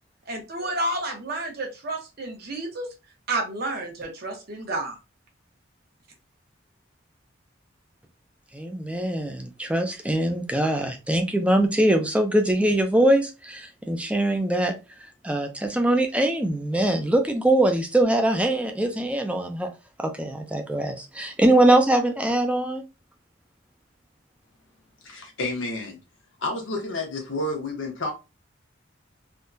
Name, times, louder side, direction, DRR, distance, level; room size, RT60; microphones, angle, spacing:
voice 1, 0.3-2.9 3.3-5.0, right 2 dB, 55° right, 1.1 m, -30 dB
voice 2, 8.5-14.7 15.2-19.7 20.0-22.8, right 1 dB, 5° right, 0.5 m, -22 dB
voice 3, 25.0-26.0 26.4-28.1, left 2 dB, 80° left, 1.1 m, -30 dB
3.5 x 2.3 x 2.7 m
head